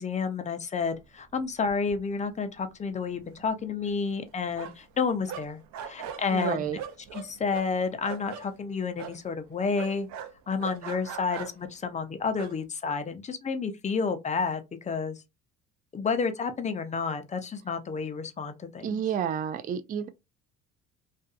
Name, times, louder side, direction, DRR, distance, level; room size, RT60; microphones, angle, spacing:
voice 1, 0.0-5.6 5.9-6.8 7.1-10.1 10.5-15.2 15.9-19.0, left 5 dB, 25° left, 0.6 m, -30 dB
sound 1, 1.4-1.5 1.7-2.3 2.6-2.7 3.0-4.9 5.3-8.5 9.0-9.2 9.8-11.7 12.3-12.6, right 8 dB, 65° right, 0.6 m, -40 dB
voice 2, 6.3-6.8 18.8-20.1, right 8 dB, 30° right, 0.4 m, -30 dB
2.6 x 2.3 x 2.4 m
supercardioid pair, 90°, 30 cm